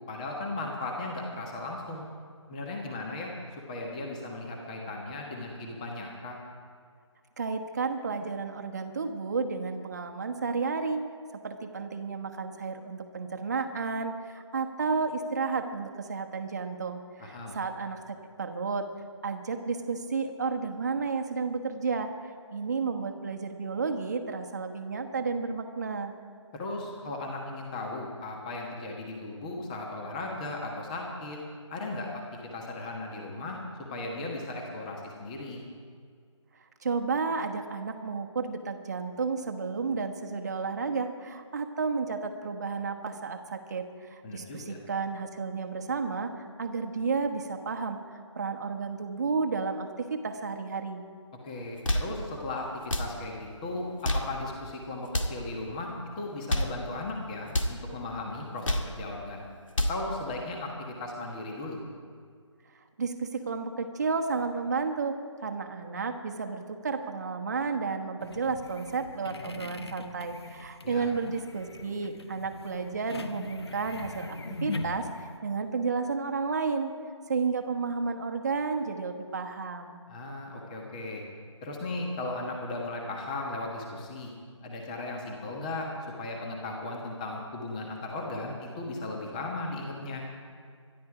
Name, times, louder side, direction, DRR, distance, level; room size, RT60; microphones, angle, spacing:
voice 1, 0.1-2.1 2.5-6.4 17.2-17.5 26.5-31.4 31.7-32.2 32.5-33.6 33.9-35.6 44.2-44.8 51.4-59.4 59.9-61.8 70.8-71.1 80.1-81.2 81.6-84.3 84.6-90.2, left 2 dB, 15° left, 0 dB, 1.4 m, -36 dB
voice 2, 7.4-11.0 11.4-18.9 19.2-26.1 36.8-48.0 48.3-51.0 63.0-65.1 65.4-76.9 77.3-80.0, right 4 dB, 35° right, 4 dB, 1.3 m, -32 dB
sound 1, 51.7-52.2 52.8-53.2 53.9-54.4 55.0-55.4 56.3-56.8 57.5-57.8 58.4-59.0 59.5-60.1, left 1 dB, 80° left, 2.2 m, -29 dB
sound 2, 68.2-75.4, left 3 dB, 55° left, 1.3 m, -40 dB
24.0 x 11.5 x 4.9 m, 2.1 s
figure-of-eight pair, 170°, 16 cm